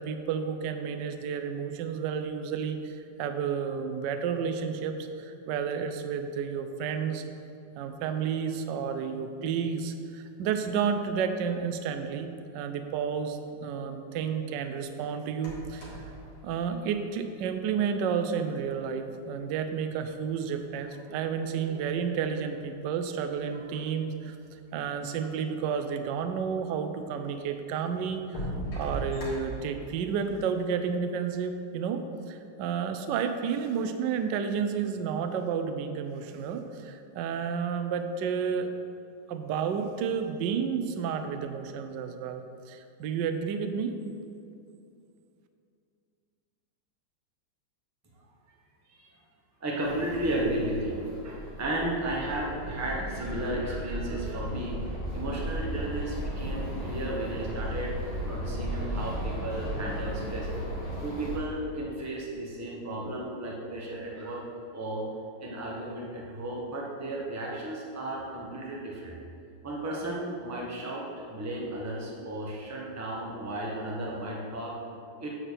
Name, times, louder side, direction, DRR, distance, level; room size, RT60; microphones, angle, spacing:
voice 1, 0.0-7.2 7.8-16.0 16.4-24.3 24.7-28.5 28.8-38.7 39.3-44.0, right 6 dB, 70° right, 7 dB, 1.1 m, -31 dB
sound 1, 15.4-17.6 18.7-18.8 19.4-20.5 21.2-22.0 22.8-22.9 23.1-23.2 23.8-23.9 24.2-24.9 26.6-26.7 27.3-27.4 28.0-29.9, right 1 dB, 75° left, 2.6 m, -39 dB
voice 2, 49.6-54.8 55.1-60.5 61.0-64.4 64.7-65.0 65.4-69.1 69.6-74.7 75.2-75.3, right 1 dB, 10° right, -3 dB, 0.8 m, -34 dB
sound 2, 49.8-61.4, equal, 30° left, 1.5 m, -35 dB
8.8 x 4.5 x 6.7 m, 2.6 s
omnidirectional pair, 2.3 m